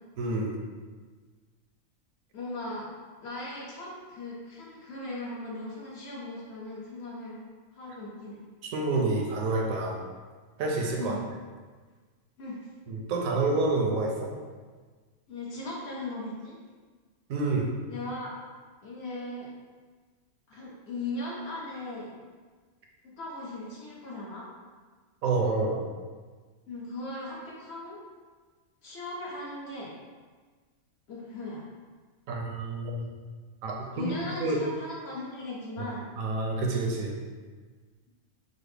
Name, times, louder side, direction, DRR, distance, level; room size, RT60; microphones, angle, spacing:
voice 1, 0.2-0.6 8.6-10.0 10.6-11.2 12.9-14.3 17.3-17.7 25.2-25.8 32.3-33.1 33.6-34.6 36.2-37.2, right 3 dB, 80° right, 0 dB, 1.0 m, -28 dB
voice 2, 2.3-2.9 3.2-7.4 7.7-8.4 11.0-11.2 12.4-12.7 15.3-16.5 17.9-18.3 18.8-19.5 20.5-22.1 23.0-24.5 26.7-28.0 28.8-29.9 31.1-31.6 33.9-36.1, left 2 dB, 55° left, -5 dB, 0.8 m, -38 dB
3.9 x 2.0 x 3.3 m, 1.5 s
omnidirectional pair, 1.5 m